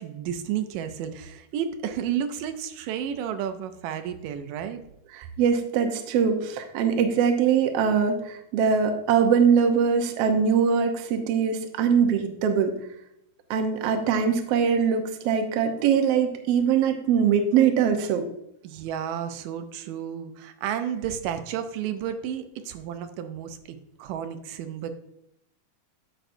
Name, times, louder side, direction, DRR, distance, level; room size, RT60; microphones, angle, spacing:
voice 1, 0.0-4.8 18.6-24.9, right 9 dB, 90° right, 8 dB, 2.3 m, -32 dB
voice 2, 5.1-12.7 13.5-18.2, right 7 dB, 65° right, 5 dB, 1.6 m, -22 dB
9.1 x 7.7 x 2.6 m, 0.81 s
omnidirectional pair, 3.7 m